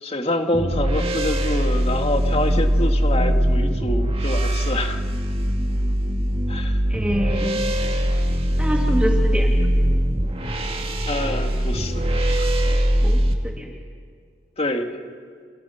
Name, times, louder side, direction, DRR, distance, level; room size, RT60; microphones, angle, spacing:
voice 1, 0.0-5.0 6.5-6.8 11.1-12.5 14.6-15.0, left 1 dB, 35° left, 4 dB, 2.0 m, -26 dB
sound 1, 0.5-13.3, equal, 30° right, 1.9 m, -21 dB
voice 2, 6.9-7.7 8.6-9.5 13.0-13.7, equal, 5° right, 0 dB, 2.3 m, -26 dB
30.0 x 28.5 x 5.8 m, 2.1 s
head